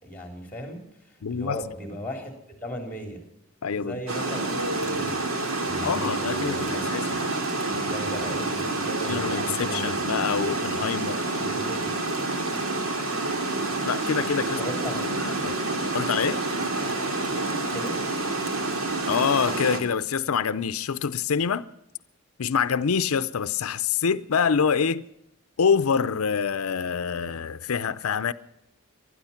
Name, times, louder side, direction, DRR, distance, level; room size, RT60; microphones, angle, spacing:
voice 1, 0.0-2.3 2.6-3.2 3.8-6.9 7.7-10.0 10.4-10.5 11.4-11.9 14.6-15.2 17.7-18.0, right 1 dB, 5° left, 3.6 m, -37 dB
voice 2, 1.2-1.6 3.6-4.0 5.8-7.3 9.1-11.2 13.8-14.6 14.9-15.6 15.9-16.4 19.1-21.7 22.4-25.0 25.6-28.3, left 6 dB, 90° left, 0.5 m, -26 dB
Water, 4.1-19.8, right 2 dB, 85° right, 2.3 m, -28 dB
20.0 x 12.5 x 5.8 m
head